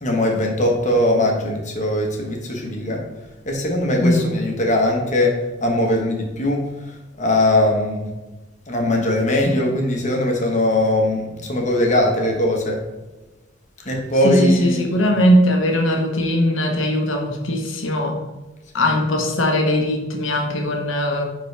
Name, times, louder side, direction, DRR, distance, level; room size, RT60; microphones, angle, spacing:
voice 1, 0.0-3.0 3.4-8.1 8.7-12.8 13.8-15.2 18.9-19.0, left 1 dB, 40° left, 1 dB, 1.2 m, -20 dB
voice 2, 14.2-18.2 18.7-21.3, equal, 80° left, 2 dB, 1.0 m, -19 dB
9.8 x 3.8 x 3.3 m, 1.1 s
head